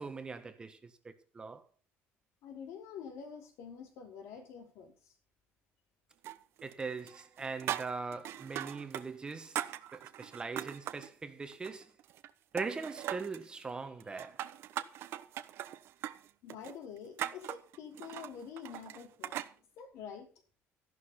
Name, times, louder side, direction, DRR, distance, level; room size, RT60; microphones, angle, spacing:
voice 1, 0.0-1.6 6.6-9.6 9.9-11.9 12.5-14.4, right 4 dB, 20° right, 1.5 m, -41 dB
voice 2, 2.4-4.9 16.4-19.4 19.8-20.3, left 7 dB, 75° left, 5.3 m, -47 dB
sound 1, 6.2-6.8 7.1-9.1 9.3-11.1 11.5-12.3 12.6-13.5 14.0-19.5, right 12 dB, 60° right, 1.1 m, -40 dB
14.0 x 11.5 x 4.3 m
cardioid pair, 165°, 5 cm